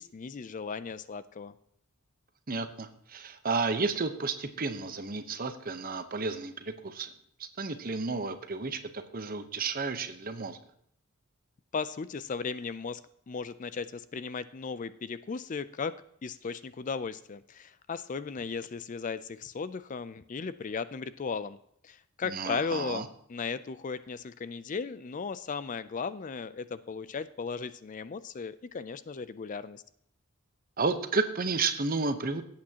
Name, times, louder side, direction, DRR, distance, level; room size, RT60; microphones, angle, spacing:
voice 1, 0.0-1.5 11.7-13.0 13.3-15.9 16.2-21.6 21.8-29.8, left 5 dB, 35° left, 14 dB, 0.4 m, -36 dB
voice 2, 2.5-7.1 7.4-10.6 22.2-23.1 30.8-32.4, right 4 dB, 40° right, 9 dB, 0.9 m, -32 dB
17.5 x 8.6 x 2.9 m, 0.70 s
head